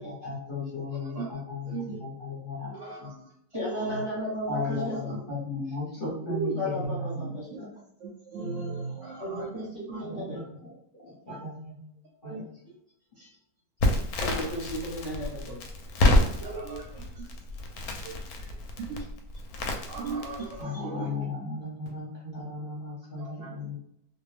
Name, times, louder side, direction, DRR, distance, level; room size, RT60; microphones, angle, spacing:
voice 1, 0.0-2.7 3.0-3.1 4.5-7.3 10.0-10.7 11.0-11.8 12.2-12.4 20.6-23.8, left 3 dB, 40° left, -7 dB, 0.9 m, -35 dB
voice 2, 0.9-1.4 1.7-2.0 2.7-3.3 3.6-4.0 4.9-5.2 6.7-7.7 8.0-10.0 11.3-11.4 12.2-12.4 13.2-13.3 16.0-17.3 18.0-18.1 18.4-19.1 19.9-21.1 23.2-23.5, right 4 dB, 70° right, -3 dB, 0.8 m, -38 dB
voice 3, 3.5-5.0 6.3-7.7 9.2-9.6 9.9-10.4 14.2-15.6, equal, 25° right, -8 dB, 0.7 m, -33 dB
Crackle, 13.8-20.6, left 1 dB, 70° left, 1.0 m, -28 dB
2.6 x 2.2 x 3.3 m, 0.73 s
omnidirectional pair, 1.8 m